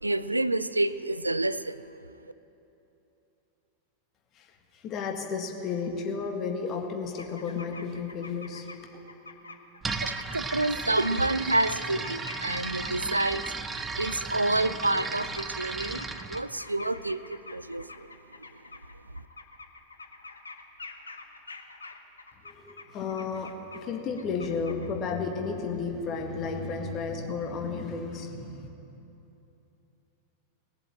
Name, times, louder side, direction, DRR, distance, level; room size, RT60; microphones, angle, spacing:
voice 1, 0.0-1.9 9.9-13.4 13.7-18.1, right 2 dB, 85° right, 15 dB, 0.4 m, -28 dB
voice 2, 4.3-8.7 22.4-28.7, left 5 dB, 35° left, 3 dB, 1.7 m, -33 dB
sound 1, 7.2-8.8 9.1-13.2 13.4-14.1 14.5-23.9 24.2-24.9, left 3 dB, 75° left, 0.9 m, -46 dB
sound 2, 9.8-16.4, right 4 dB, 15° right, 0.7 m, -35 dB
18.5 x 7.7 x 8.9 m, 3.0 s
figure-of-eight pair, 90°, 0 cm